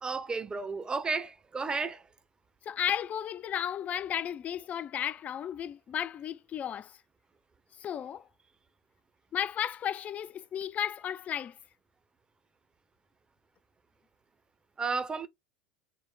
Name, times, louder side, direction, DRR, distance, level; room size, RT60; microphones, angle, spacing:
voice 1, 0.0-2.0 14.8-15.3, right 4 dB, 20° right, 0.6 m, -32 dB
voice 2, 2.7-7.0 7.8-8.2 9.3-11.5, left 9 dB, 30° left, 0.3 m, -34 dB
3.7 x 2.1 x 3.7 m
figure-of-eight pair, 75°, 5 cm